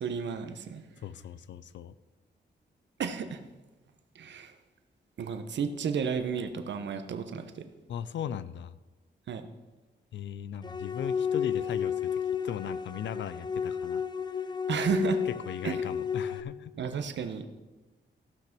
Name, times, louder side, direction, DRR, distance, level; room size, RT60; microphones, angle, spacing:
voice 1, 0.0-0.8 3.0-3.4 4.1-4.5 5.2-7.6 9.3-9.5 14.7-15.2 15.6-15.7 16.8-17.4, right 6 dB, 75° right, 8 dB, 1.0 m, -32 dB
voice 2, 1.0-1.9 7.9-8.7 10.1-14.0 15.3-16.7, left 9 dB, 90° left, 16 dB, 0.5 m, -38 dB
sound 1, 10.6-16.4, left 7 dB, 25° left, 0.6 m, -32 dB
15.0 x 6.0 x 6.0 m, 1.2 s
cardioid pair, 100°, 19 cm